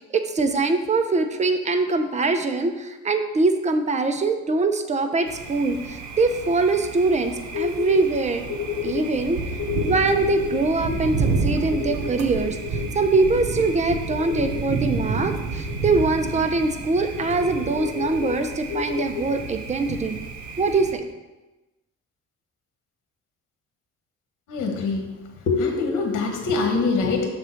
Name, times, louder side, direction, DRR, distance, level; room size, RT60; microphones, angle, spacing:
voice 1, 0.0-8.4 8.8-9.4 9.8-20.2 20.6-21.0, right 3 dB, 25° right, 7 dB, 0.6 m, -23 dB
Thunder, 5.3-20.9, right 4 dB, 70° right, 0.9 m, -30 dB
sound 1, 7.5-8.0 8.5-16.0 16.3-16.4 16.7-16.8 17.1-19.2, left 10 dB, 60° left, 1.6 m, -31 dB
voice 2, 24.5-25.1 25.5-27.3, left 4 dB, 80° left, 2 dB, 1.3 m, -23 dB
6.6 x 3.7 x 5.7 m, 1.1 s
cardioid pair, 90°, 30 cm